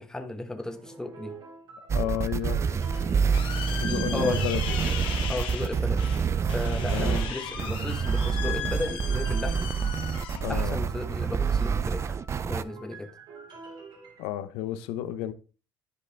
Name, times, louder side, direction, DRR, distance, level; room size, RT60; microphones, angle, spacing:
voice 1, 0.0-1.4 3.7-4.5 5.3-6.1 6.5-9.7 10.5-12.2 12.4-13.1, left 2 dB, 5° left, 1.1 m, -34 dB
sound 1, 0.7-3.6 3.9-5.1 5.6-7.3 7.6-14.3, right 4 dB, 60° right, 2.5 m, -48 dB
voice 2, 1.9-2.6 3.0-3.3 3.6-4.8 6.9-7.2 10.4-10.8 14.2-15.3, left 11 dB, 85° left, 0.8 m, -32 dB
sound 2, 1.9-12.6, right 6 dB, 30° right, 0.4 m, -27 dB
sound 3, 2.7-11.8, left 8 dB, 60° left, 1.5 m, -38 dB
10.5 x 5.1 x 3.4 m
supercardioid pair, 95°, 9 cm